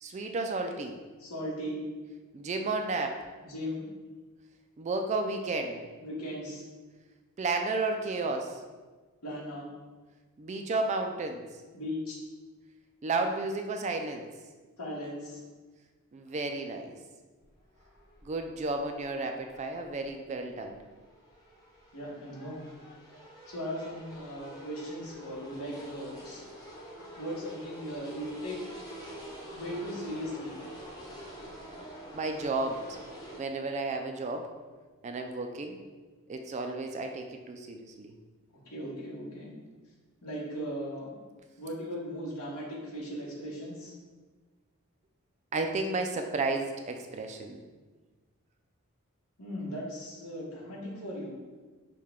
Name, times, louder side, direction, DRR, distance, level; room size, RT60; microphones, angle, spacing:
voice 1, 0.0-1.0 2.3-3.2 4.8-5.8 7.4-8.6 10.4-11.4 13.0-14.2 16.1-17.0 18.2-20.8 32.1-32.8 33.4-34.5 35.0-35.8 36.3-38.1 45.5-47.6, right 3 dB, 30° right, 5 dB, 0.3 m, -32 dB
voice 2, 1.2-1.8 3.4-3.8 6.0-6.6 9.2-9.6 11.7-12.2 14.8-15.4 21.9-22.6 23.5-26.4 27.2-28.6 29.5-30.6 38.7-39.5 40.2-41.1 41.6-43.9 49.4-51.3, equal, 80° left, -5 dB, 1.4 m, -38 dB
sound 1, 17.4-33.4, equal, 15° left, 0.7 m, -47 dB
6.4 x 2.3 x 3.6 m, 1.3 s
head